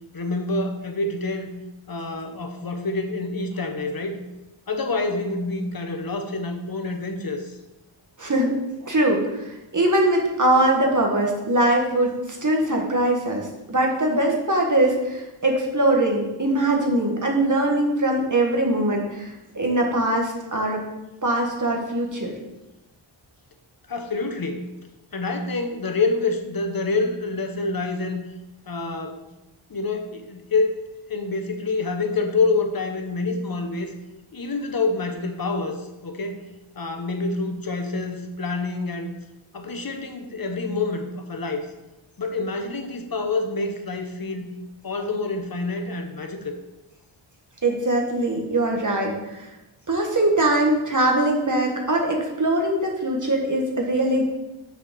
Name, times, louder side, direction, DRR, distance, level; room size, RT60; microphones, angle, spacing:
voice 1, 0.1-1.5 1.9-4.2 4.7-7.6 23.9-24.7 25.1-28.2 28.6-29.2 29.7-33.9 34.3-36.4 36.7-39.1 39.5-41.7 42.2-44.5 44.8-46.6, left 3 dB, 45° left, 5 dB, 1.0 m, -27 dB
voice 2, 8.2-8.5 8.8-20.8 21.2-22.3 47.6-49.5 49.9-54.3, right 1 dB, 35° right, 0 dB, 1.6 m, -22 dB
6.4 x 5.1 x 6.9 m, 1.0 s
wide cardioid pair, 100°, 50 cm